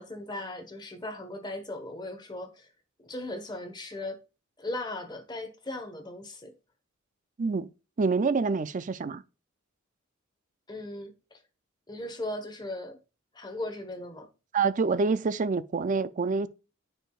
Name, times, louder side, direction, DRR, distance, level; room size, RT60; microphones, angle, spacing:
voice 1, 0.0-2.7 3.0-4.2 4.6-6.5 10.7-11.4 11.9-13.0 13.3-14.3, left 1 dB, 20° left, 1.2 m, -38 dB
voice 2, 7.4-7.7 8.0-9.2 14.5-16.5, right 4 dB, 40° right, 0.4 m, -26 dB
9.0 x 4.8 x 2.4 m
head